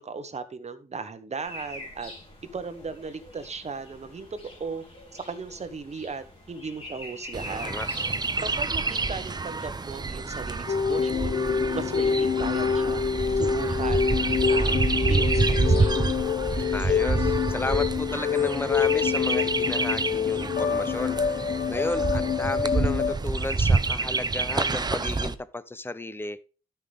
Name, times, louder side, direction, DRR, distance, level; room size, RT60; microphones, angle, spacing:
voice 1, 0.0-2.1 2.5-4.8 5.1-7.8 8.4-11.4 11.7-13.0 13.4-16.2, right 4 dB, 45° right, 1.2 m, -37 dB
sound 1, 1.4-17.4, left 1 dB, 40° left, 3.5 m, -46 dB
Chirp tweet, 7.3-25.3, right 3 dB, 25° right, 0.6 m, -28 dB
voice 2, 7.5-7.9 16.7-26.4, left 2 dB, 15° left, 0.6 m, -33 dB
sound 2, 10.7-23.1, left 6 dB, 65° left, 0.9 m, -26 dB
12.0 x 5.9 x 3.5 m
wide cardioid pair, 105°, 15 cm